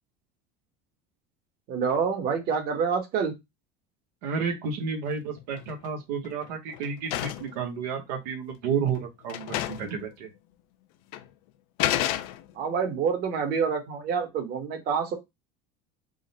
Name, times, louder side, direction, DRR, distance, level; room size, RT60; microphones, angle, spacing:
voice 1, 1.7-3.3 12.5-15.1, right 6 dB, 50° right, 4 dB, 1.2 m, -27 dB
voice 2, 4.2-10.3, right 6 dB, 85° right, 2 dB, 1.0 m, -31 dB
sound 1, 5.4-5.9 6.2-7.6 8.5-8.6 9.0-9.1 9.3-10.0 10.2-10.3 11.1-11.3 11.8-12.7, left 13 dB, 70° left, 0.5 m, -30 dB
3.7 x 2.1 x 4.0 m, 0.20 s
supercardioid pair, 130°, 21 cm